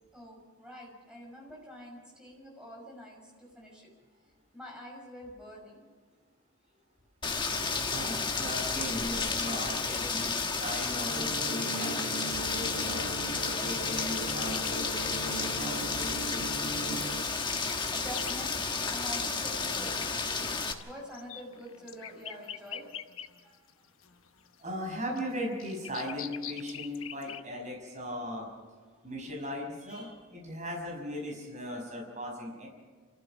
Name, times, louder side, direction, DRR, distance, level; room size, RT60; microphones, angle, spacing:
voice 1, 0.1-3.9 4.5-5.9 17.9-23.0 23.4-23.9 28.9-29.0 29.9-30.1, equal, 5° right, -2 dB, 5.9 m, -47 dB
Rain, 7.2-20.7, left 4 dB, 20° left, 1.3 m, -32 dB
voice 2, 7.9-13.2 13.4-16.4 16.9-17.1 24.6-28.5 29.0-32.7, equal, 35° right, -1 dB, 5.9 m, -38 dB
sound 1, 11.1-17.3, right 2 dB, 65° right, 1.5 m, -39 dB
sound 2, 14.0-15.0 15.4-15.5 16.7-18.5 19.4-19.5 20.3-23.7 24.0-27.4, left 10 dB, 75° left, 1.0 m, -44 dB
29.0 x 15.0 x 6.3 m, 1.5 s
head